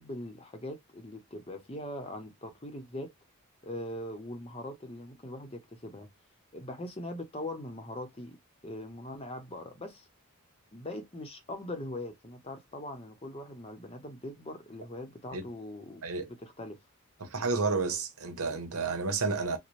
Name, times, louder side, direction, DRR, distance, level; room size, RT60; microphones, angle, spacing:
voice 1, 0.0-3.1 3.6-6.1 6.5-8.4 8.6-10.1 10.7-16.1 16.4-16.8, left 1 dB, 25° left, 0.7 m, -41 dB
voice 2, 17.2-19.6, right 4 dB, 85° right, 1.0 m, -31 dB
4.1 x 2.1 x 3.0 m
head